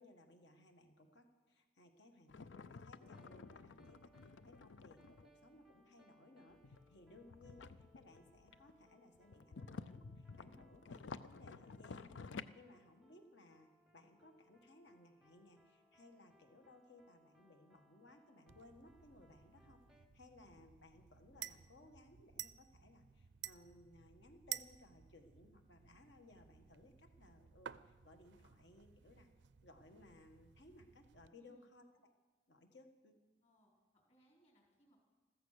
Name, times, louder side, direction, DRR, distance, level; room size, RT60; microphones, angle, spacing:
voice 1, 0.0-29.3 29.6-32.1 32.5-33.1, left 2 dB, 65° left, 5 dB, 1.6 m, -63 dB
sound 1, 2.3-5.3 6.5-8.8 9.1-12.4, left 4 dB, 80° left, 0.5 m, -52 dB
sound 2, 3.0-20.1, right 1 dB, ahead, 0.8 m, -72 dB
voice 2, 3.5-3.8 31.3-31.7 33.4-35.0, right 1 dB, 35° left, -1 dB, 4.0 m, -72 dB
sound 3, 18.5-31.3, right 11 dB, 70° right, 0.5 m, -54 dB
14.5 x 14.5 x 6.6 m, 1.3 s
head